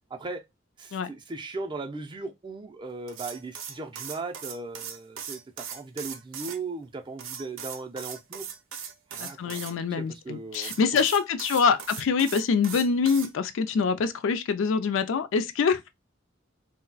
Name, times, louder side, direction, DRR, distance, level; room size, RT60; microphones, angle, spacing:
voice 1, 0.1-0.4 0.8-8.5 9.1-11.0, right 3 dB, 25° right, 0.4 m, -38 dB
sound 1, 3.1-6.6 7.2-9.7 10.5-13.3, right 8 dB, 80° right, 0.5 m, -39 dB
voice 2, 9.2-15.9, left 5 dB, 70° left, 0.4 m, -25 dB
2.3 x 2.1 x 3.8 m
head